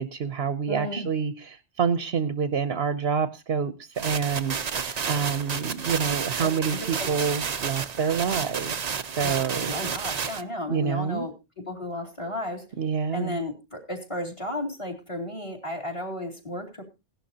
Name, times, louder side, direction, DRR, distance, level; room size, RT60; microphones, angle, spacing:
voice 1, 0.0-8.7 9.2-9.7 10.7-11.2 12.8-13.4, right 6 dB, 60° right, 10 dB, 1.0 m, -27 dB
voice 2, 0.6-1.1 6.4-7.1 9.2-9.3 9.6-11.3 11.6-12.6 13.1-16.8, left 1 dB, 25° left, 4 dB, 2.5 m, -33 dB
sound 1, 4.0-10.4, right 6 dB, 45° right, 0.7 m, -31 dB
16.5 x 11.5 x 2.8 m, 0.27 s
omnidirectional pair, 1.2 m